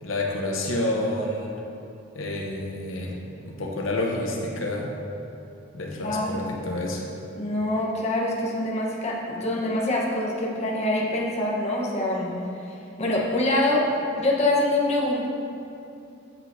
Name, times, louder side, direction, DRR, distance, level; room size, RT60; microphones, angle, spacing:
voice 1, 0.0-1.5 2.1-3.2 3.5-5.0 5.7-7.0, left 1 dB, 90° left, -1 dB, 0.9 m, -29 dB
voice 2, 6.0-6.6 7.4-13.9 14.2-15.3, left 1 dB, 35° left, -4 dB, 1.1 m, -25 dB
8.9 x 7.7 x 2.7 m, 2.7 s
head